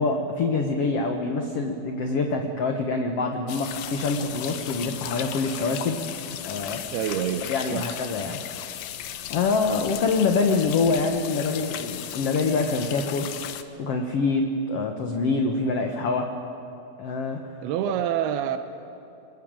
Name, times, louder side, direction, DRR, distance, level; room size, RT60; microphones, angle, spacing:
voice 1, 0.0-6.0 6.4-6.8 7.5-8.4 9.3-13.5 13.8-16.3 17.0-17.4, left 4 dB, 60° left, 3 dB, 1.7 m, -25 dB
sound 1, 3.5-13.6, left 11 dB, 80° left, 2.9 m, -36 dB
voice 2, 6.9-7.9 17.6-18.6, right 10 dB, 90° right, 8 dB, 2.8 m, -27 dB
26.0 x 21.0 x 8.9 m, 2.7 s
omnidirectional pair, 4.4 m